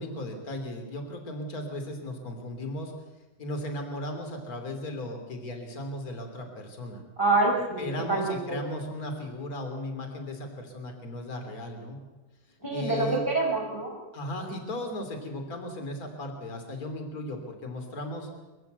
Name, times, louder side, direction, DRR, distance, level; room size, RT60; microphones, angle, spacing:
voice 1, 0.0-2.9 3.4-7.0 7.8-12.0 12.7-13.2 14.1-18.3, left 1 dB, 25° left, 5 dB, 2.7 m, -36 dB
voice 2, 7.2-8.6 12.6-14.0, right 2 dB, 5° left, 0 dB, 4.7 m, -26 dB
24.0 x 15.0 x 8.2 m, 1.1 s
omnidirectional pair, 5.5 m